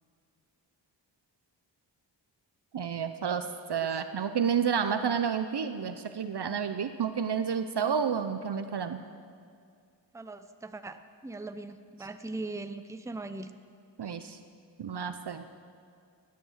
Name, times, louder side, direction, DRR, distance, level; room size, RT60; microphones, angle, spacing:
voice 1, 2.7-9.0 14.0-14.4 14.8-15.4, right 7 dB, 60° right, 9 dB, 0.8 m, -30 dB
voice 2, 10.1-13.5, right 2 dB, 5° right, 9 dB, 0.6 m, -40 dB
16.5 x 9.6 x 7.4 m, 2.3 s
wide cardioid pair, 85°, 45 cm